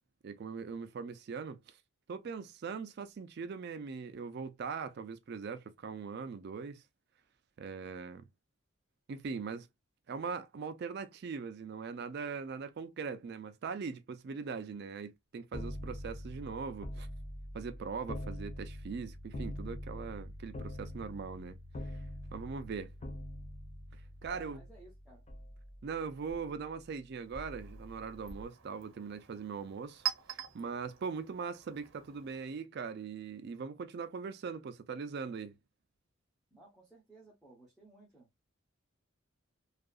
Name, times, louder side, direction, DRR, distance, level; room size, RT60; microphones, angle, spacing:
voice 1, 0.2-1.8 2.1-6.8 7.6-8.2 9.1-9.7 10.1-17.1 17.5-21.6 21.8-22.0 22.3-22.9 23.9-24.6 25.8-30.0 30.3-35.5, right 5 dB, 50° right, 0.3 m, -41 dB
sound 1, 15.5-26.9 27.3-28.5, left 1 dB, 30° left, 0.6 m, -44 dB
voice 2, 24.2-25.3 36.5-38.3, right 1 dB, ahead, 0.8 m, -58 dB
Chink clink, 27.1-32.6, right 12 dB, 75° right, 0.8 m, -44 dB
2.7 x 2.4 x 2.3 m
head